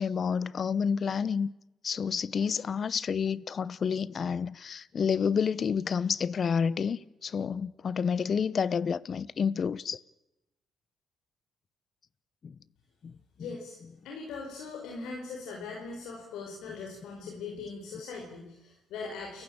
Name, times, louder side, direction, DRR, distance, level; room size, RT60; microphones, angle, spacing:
voice 1, 0.0-1.5 1.8-10.0 12.4-12.5, left 6 dB, 50° left, 0.9 m, -29 dB
voice 2, 13.4-13.8 14.0-19.4, left 4 dB, 85° left, 5.0 m, -40 dB
29.5 x 15.5 x 8.9 m
cardioid pair, 90°, 0 cm